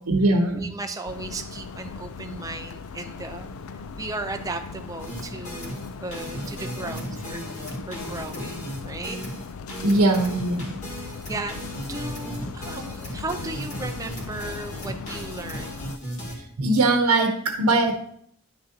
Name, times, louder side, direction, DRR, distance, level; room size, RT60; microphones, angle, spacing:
voice 1, 0.1-0.7 9.8-10.8 16.6-17.9, right 2 dB, 85° right, 3 dB, 0.9 m, -21 dB
voice 2, 0.6-7.5 7.9-9.2 10.9-11.5 11.9-16.0, right 2 dB, 15° right, 6 dB, 0.6 m, -36 dB
sound 1, 1.1-16.0, left 5 dB, 75° left, 0.4 m, -39 dB
sound 2, 5.0-16.4, equal, 35° left, 2.1 m, -36 dB
10.5 x 6.4 x 2.9 m, 0.66 s
head